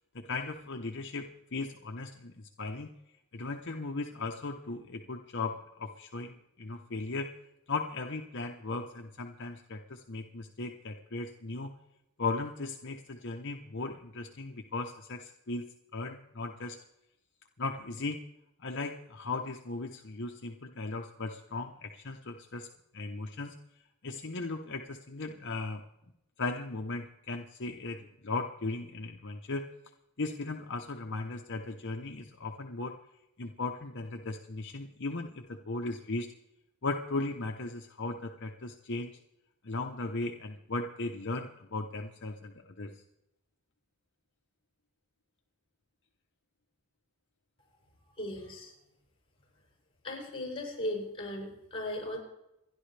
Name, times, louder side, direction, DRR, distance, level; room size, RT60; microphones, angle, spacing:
voice 1, 0.1-2.9 3.3-7.3 7.7-11.7 12.2-15.6 15.9-16.8 17.6-18.2 18.6-22.7 22.9-23.6 24.0-25.8 26.4-29.6 30.2-33.0 33.4-36.3 36.8-39.1 39.6-43.0, left 3 dB, 55° left, 3 dB, 1.0 m, -37 dB
voice 2, 48.2-48.7 50.0-52.2, left 1 dB, 25° left, 0 dB, 7.4 m, -37 dB
28.5 x 11.5 x 3.4 m, 0.89 s
head